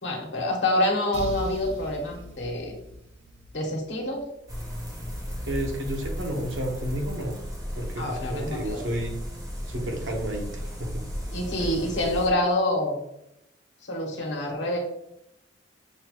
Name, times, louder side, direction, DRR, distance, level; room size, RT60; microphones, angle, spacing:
voice 1, 0.0-2.7 3.5-4.3 8.0-8.8 11.3-13.0 13.9-14.8, left 1 dB, 70° left, 0 dB, 1.1 m, -27 dB
sound 1, 1.1-4.8, left 1 dB, 60° right, 0.6 m, -40 dB
sound 2, 4.5-12.3, equal, 20° right, 0.9 m, -35 dB
voice 2, 5.5-7.3 7.7-9.1 9.7-11.0, right 1 dB, 85° right, 2 dB, 0.9 m, -31 dB
6.2 x 2.3 x 2.9 m, 0.81 s
head